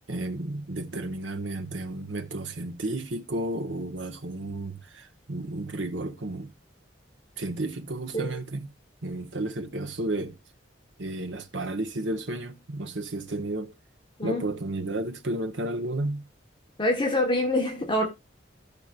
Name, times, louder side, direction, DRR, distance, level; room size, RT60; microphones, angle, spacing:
voice 1, 0.1-6.5 7.4-8.7 9.0-10.4 11.0-13.7 14.2-16.3, right 1 dB, 85° right, 1.3 m, -32 dB
voice 2, 16.8-18.1, left 1 dB, 25° left, 1.5 m, -25 dB
15.0 x 5.2 x 2.5 m
head